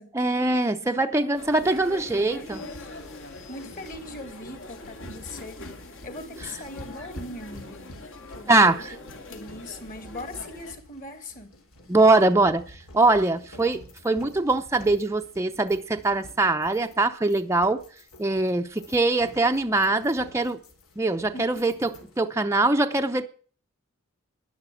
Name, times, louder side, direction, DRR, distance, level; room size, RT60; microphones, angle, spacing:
voice 1, 0.1-2.6 8.5-8.9 11.9-17.8 18.2-20.6 21.0-23.3, right 2 dB, 15° right, 0.6 m, -22 dB
voice 2, 1.2-1.6 2.3-2.9 3.5-5.6 6.0-7.9 8.4-8.7 9.3-11.5 21.3-21.6, left 1 dB, 40° left, 2.4 m, -40 dB
sound 1, 1.3-10.7, left 2 dB, 65° left, 2.6 m, -43 dB
sound 2, 2.5-22.3, left 1 dB, 80° left, 3.1 m, -49 dB
12.0 x 10.5 x 7.2 m
head